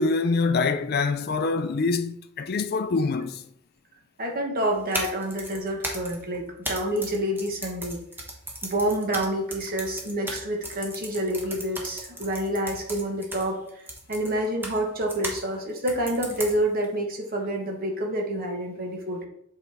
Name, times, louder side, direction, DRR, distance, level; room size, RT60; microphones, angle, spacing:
voice 1, 0.0-3.4, left 4 dB, 45° left, 0.4 m, -25 dB
voice 2, 4.2-8.0 8.6-13.8 14.1-19.3, right 1 dB, 40° right, 1.2 m, -28 dB
sound 1, 4.7-15.4 15.9-16.8, right 1 dB, 10° right, 0.9 m, -36 dB
7.9 x 4.2 x 3.5 m
head